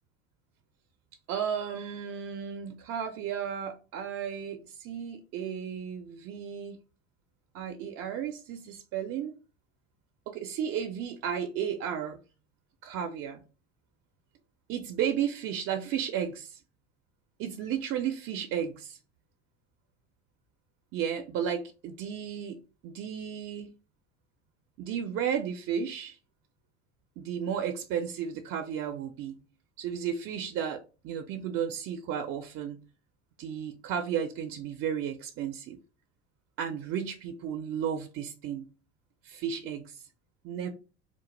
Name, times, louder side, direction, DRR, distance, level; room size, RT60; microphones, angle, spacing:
voice 1, 1.3-6.8 7.5-9.3 10.3-12.2 12.8-13.4 14.7-16.6 17.4-19.0 20.9-23.7 24.8-26.2 27.2-29.4 29.8-32.8 33.4-35.8 36.6-38.6 39.2-40.0 40.4-40.7, right 8 dB, 45° right, 0.4 m, -33 dB
2.1 x 2.0 x 2.9 m
hypercardioid pair, 75°, 32 cm